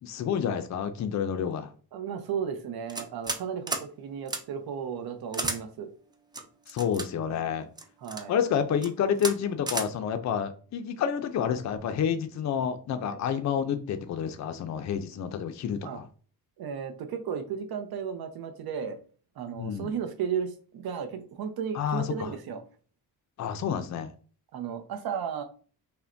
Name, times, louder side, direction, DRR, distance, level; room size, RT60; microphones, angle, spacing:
voice 1, 0.0-1.7 6.7-7.7 8.3-16.1 19.6-19.9 21.7-22.3 23.4-24.1, left 8 dB, 45° left, 0.5 m, -29 dB
voice 2, 1.9-5.9 7.2-7.4 8.0-8.4 13.0-13.2 15.8-16.0 16.6-19.0 19.4-22.6 24.5-25.4, right 7 dB, 70° right, 0.7 m, -34 dB
sound 1, 2.9-3.4 3.7-3.9 4.3-4.4 5.3-5.6 6.3-7.1 7.8-8.2 8.7-8.9 9.2-9.3 9.7-9.9, right 2 dB, 10° right, 0.3 m, -32 dB
5.5 x 2.2 x 2.6 m
wide cardioid pair, 145°, 38 cm